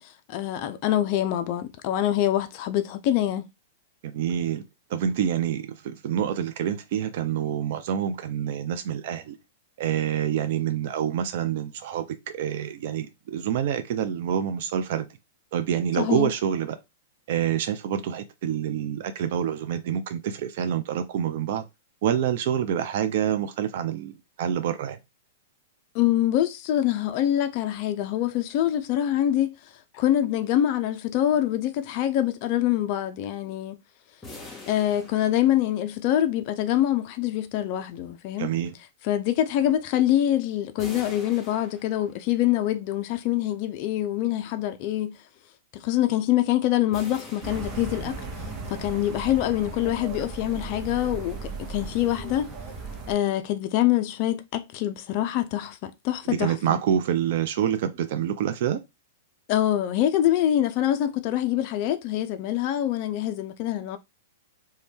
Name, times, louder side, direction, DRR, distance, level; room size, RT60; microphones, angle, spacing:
voice 1, 0.0-3.5 16.0-16.3 25.9-33.8 34.7-38.5 39.0-45.2 45.7-48.2 48.4-52.5 53.1-56.6 59.5-64.0, left 12 dB, 45° left, 0.3 m, -25 dB
voice 2, 4.0-4.6 4.9-9.4 9.8-15.1 15.5-16.8 17.3-21.7 22.0-25.0 38.4-38.7 56.3-58.8, right 9 dB, 60° right, 0.3 m, -27 dB
sound 1, 34.2-36.1 40.8-42.4 46.9-48.6, left 2 dB, 10° left, 0.9 m, -45 dB
sound 2, 47.4-53.2, right 3 dB, 30° right, 0.8 m, -36 dB
2.6 x 2.2 x 3.4 m
hypercardioid pair, 110°, 0 cm